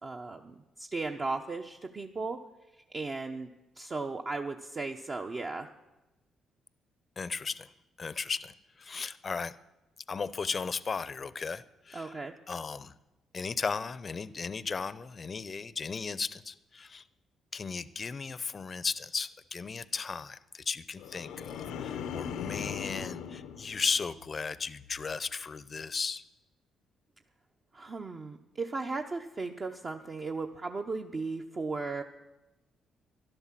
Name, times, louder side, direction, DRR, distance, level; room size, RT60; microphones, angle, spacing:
voice 1, 0.0-2.4 2.9-3.5 3.8-5.7 11.9-12.4 27.7-32.0, right 3 dB, 35° right, 2 dB, 0.9 m, -36 dB
voice 2, 7.2-7.7 8.0-9.5 10.1-12.1 12.5-12.9 13.3-17.0 17.5-26.2, left 5 dB, 35° left, 17 dB, 0.6 m, -36 dB
sound 1, 21.0-24.4 24.8-25.2, left 7 dB, 90° left, 0.8 m, -39 dB
12.5 x 11.5 x 7.5 m, 1.0 s
cardioid pair, 90°, 0 cm